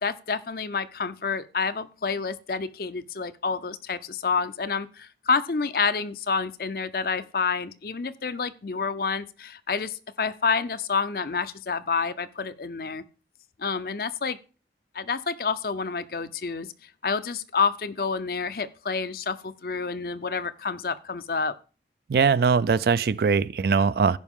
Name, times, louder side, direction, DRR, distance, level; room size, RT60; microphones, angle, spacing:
voice 1, 0.0-13.0 13.6-14.4 14.9-16.7 17.0-21.5, left 5 dB, 55° left, 0.6 m, -28 dB
voice 2, 22.1-24.2, right 5 dB, 60° right, 0.3 m, -21 dB
15.5 x 5.4 x 3.6 m
head